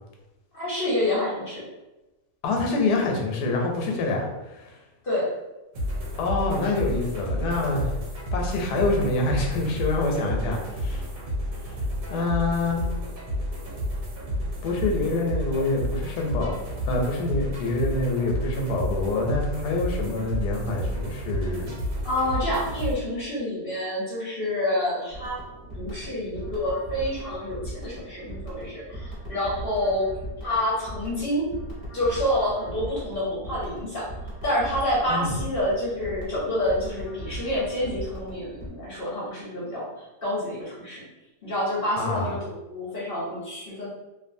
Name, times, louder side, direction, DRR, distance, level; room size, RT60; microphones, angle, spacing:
voice 1, 0.5-1.7 5.0-5.3 22.0-25.4 25.7-30.1 30.4-31.5 31.9-34.0 34.4-41.0 41.4-43.9, left 1 dB, 50° left, -7 dB, 0.7 m, -28 dB
voice 2, 2.4-4.8 6.2-8.0 8.3-11.0 12.1-12.8 14.6-16.6 16.8-21.7 35.1-35.4 42.0-42.3, left 2 dB, 80° left, 1 dB, 1.1 m, -26 dB
sound 1, 5.7-22.9, equal, 65° right, 0.9 m, -31 dB
sound 2, 25.1-38.7, right 1 dB, 35° right, 0.8 m, -38 dB
2.5 x 2.4 x 2.6 m, 1.0 s
omnidirectional pair, 1.7 m